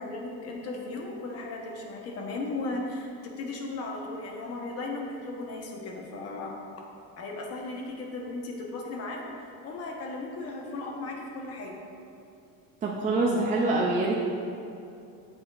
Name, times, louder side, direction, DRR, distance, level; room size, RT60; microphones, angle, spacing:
voice 1, 0.0-3.1 3.4-6.6 7.2-11.8, left 2 dB, 45° left, 0 dB, 1.1 m, -36 dB
voice 2, 12.8-14.1, right 2 dB, 20° right, -3 dB, 0.5 m, -25 dB
8.7 x 7.9 x 2.5 m, 2.7 s
cardioid pair, 175°, 36 cm